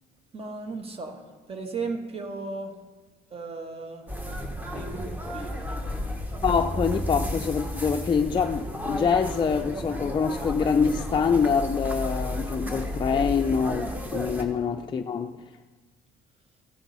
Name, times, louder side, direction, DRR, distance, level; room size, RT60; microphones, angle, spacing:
voice 1, 0.3-1.2 1.5-2.7 3.3-4.0 4.7-6.1 14.5-14.6, right 3 dB, 35° right, 4 dB, 1.4 m, -36 dB
sound 1, 4.1-14.4, left 1 dB, 10° right, 1.2 m, -33 dB
voice 2, 6.4-15.3, left 6 dB, 30° left, 4 dB, 0.4 m, -25 dB
15.0 x 6.0 x 4.1 m, 1.3 s
cardioid pair, 110°, 17 cm